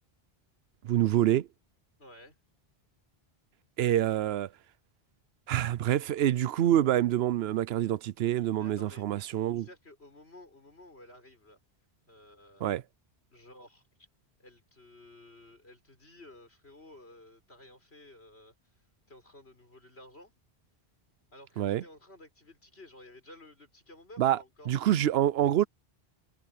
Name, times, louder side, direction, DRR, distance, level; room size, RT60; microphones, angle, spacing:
voice 1, 0.8-1.5 3.8-4.5 5.5-9.7 12.6-12.8 21.6-21.8 24.2-24.4 24.7-25.6, right 12 dB, 80° right, 0.8 m, -26 dB
voice 2, 2.0-2.4 8.6-9.0 9.6-11.6 12.1-12.7 13.3-13.8 14.4-18.5 19.1-20.3 21.3-24.7, left 1 dB, 85° left, 6.4 m, -53 dB
omnidirectional pair, 1.1 m